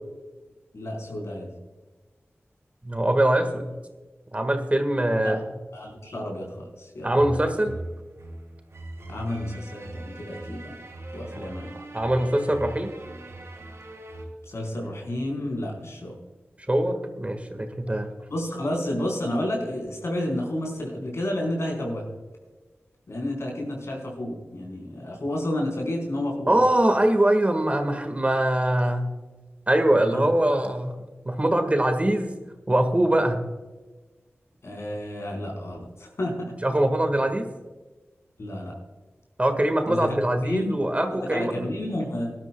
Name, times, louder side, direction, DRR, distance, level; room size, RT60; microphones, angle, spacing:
voice 1, 0.7-1.5 5.2-5.4 5.7-7.1 9.0-10.8 11.1-11.7 14.4-16.1 18.3-22.1 23.1-26.6 30.1-30.2 34.6-36.5 38.4-38.7 39.9-40.2 40.4-40.7 41.3-42.3, left 1 dB, 80° left, -1 dB, 4.8 m, -30 dB
voice 2, 2.8-3.7 4.3-5.4 7.0-7.8 11.3-11.4 11.9-12.9 16.7-18.1 26.5-29.1 29.7-32.3 32.7-33.4 36.6-37.5 39.4-41.7, right 1 dB, 30° right, 6 dB, 1.8 m, -23 dB
sound 1, 7.1-14.2, right 2 dB, 75° right, 3.9 m, -40 dB
19.5 x 12.5 x 2.4 m, 1.2 s
wide cardioid pair, 50°, 5 cm